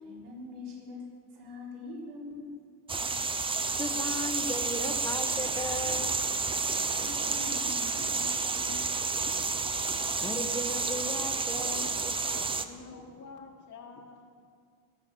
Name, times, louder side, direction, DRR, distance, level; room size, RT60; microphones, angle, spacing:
voice 1, 0.0-2.6 4.3-4.4 7.0-9.0, left 3 dB, 55° right, -3 dB, 4.2 m, -44 dB
sound 1, 2.9-12.6, right 4 dB, 10° right, 0.4 m, -30 dB
voice 2, 3.8-6.1 10.2-11.9, left 1 dB, 5° left, 6 dB, 1.0 m, -36 dB
voice 3, 12.2-14.3, left 4 dB, 35° left, -2 dB, 1.4 m, -47 dB
21.0 x 7.1 x 7.5 m, 2.1 s
cardioid pair, 135°, 48 cm